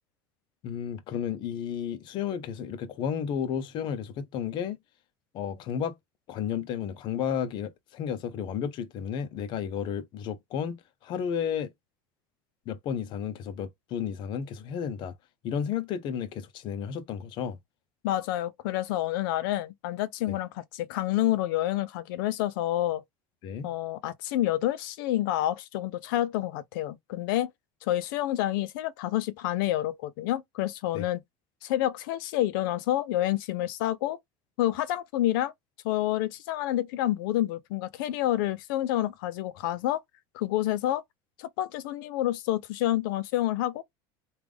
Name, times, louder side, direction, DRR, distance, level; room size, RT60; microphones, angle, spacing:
voice 1, 0.6-4.8 5.3-6.0 6.3-11.7 12.7-15.1 15.4-17.6 20.3-20.4 23.4-23.7 30.9-31.1, left 8 dB, 45° left, 0.7 m, -32 dB
voice 2, 18.0-23.0 23.6-27.5 27.8-31.2 31.6-34.2 34.6-35.5 35.8-40.0 40.3-41.0 41.4-43.8, left 14 dB, 80° left, 0.6 m, -28 dB
3.4 x 2.4 x 3.4 m
cardioid pair, 145°, 11 cm